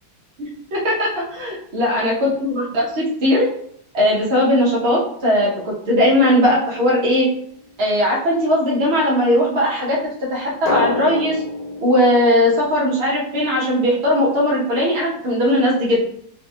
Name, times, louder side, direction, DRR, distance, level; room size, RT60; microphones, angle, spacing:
voice 1, 0.4-2.1 2.4-3.4 3.9-7.3 7.8-10.0 10.3-11.4 11.8-16.0, left 1 dB, 65° right, -5 dB, 0.6 m, -18 dB
Drum, 6.0-7.5 10.6-13.4, left 3 dB, 80° left, 0.4 m, -29 dB
4.0 x 2.3 x 2.7 m, 0.65 s
omnidirectional pair, 2.1 m